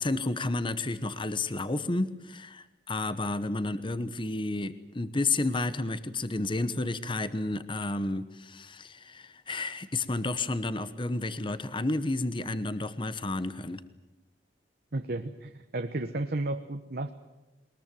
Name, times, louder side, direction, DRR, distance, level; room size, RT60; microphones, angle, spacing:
voice 1, 0.0-13.8, left 2 dB, 30° left, 13 dB, 1.0 m, -31 dB
voice 2, 14.9-17.1, right 2 dB, 55° right, 6 dB, 1.1 m, -33 dB
22.0 x 21.0 x 9.1 m, 1.0 s
head